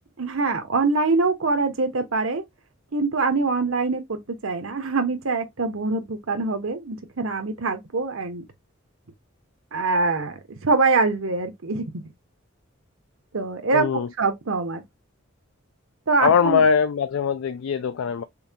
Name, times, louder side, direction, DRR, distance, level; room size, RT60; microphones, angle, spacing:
voice 1, 0.2-2.4 2.9-8.4 9.7-12.0 13.3-14.8 16.1-16.6, right 3 dB, 85° right, 1.0 m, -24 dB
voice 2, 13.7-14.1 16.2-18.2, left 6 dB, 75° left, 0.4 m, -21 dB
5.5 x 2.3 x 2.7 m
head